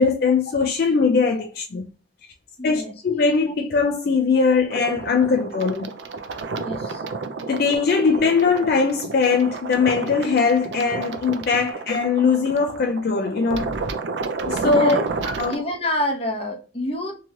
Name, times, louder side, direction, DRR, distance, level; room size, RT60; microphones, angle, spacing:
voice 1, 0.0-1.8 2.6-5.9 7.5-13.7 14.5-15.0 15.2-15.6, left 5 dB, 60° left, 0.4 m, -20 dB
voice 2, 2.6-2.9 6.5-7.0 11.6-11.7 12.6-12.7 14.6-15.0 15.5-17.2, left 1 dB, 35° left, 0.8 m, -28 dB
sound 1, 4.7-15.6, right 4 dB, 80° right, 0.4 m, -31 dB
3.0 x 2.8 x 2.3 m
head